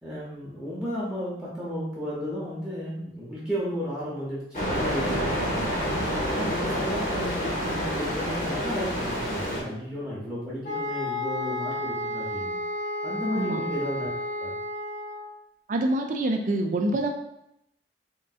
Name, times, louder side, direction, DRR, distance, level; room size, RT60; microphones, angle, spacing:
voice 1, 0.0-5.8 6.3-12.6 13.0-14.1 14.4-14.5, equal, 5° right, -8 dB, 0.6 m, -33 dB
sound 1, 4.5-9.6, equal, 45° left, 0.8 m, -28 dB
sound 2, 10.6-15.3, left 1 dB, 85° left, 0.8 m, -32 dB
voice 2, 15.7-17.1, right 2 dB, 45° right, 4 dB, 0.3 m, -26 dB
3.6 x 2.5 x 2.3 m, 0.80 s
head